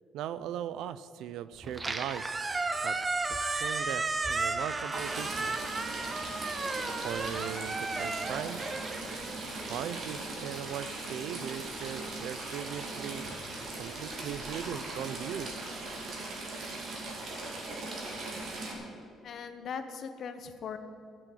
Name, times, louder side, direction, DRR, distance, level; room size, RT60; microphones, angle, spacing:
voice 1, 0.1-2.2 2.8-3.0 3.3-5.6 7.0-8.6 9.5-13.2 13.8-15.5, right 10 dB, 75° right, 15 dB, 0.4 m, -39 dB
Squeak, 1.6-9.9, right 3 dB, 20° right, 0.6 m, -34 dB
Stream / Trickle dribble, 4.9-18.7, right 2 dB, 45° right, 2.5 m, -39 dB
voice 2, 19.2-20.8, left 6 dB, 45° left, 9 dB, 0.9 m, -39 dB
13.0 x 7.7 x 7.7 m, 2.6 s
cardioid pair, 170°, 0 cm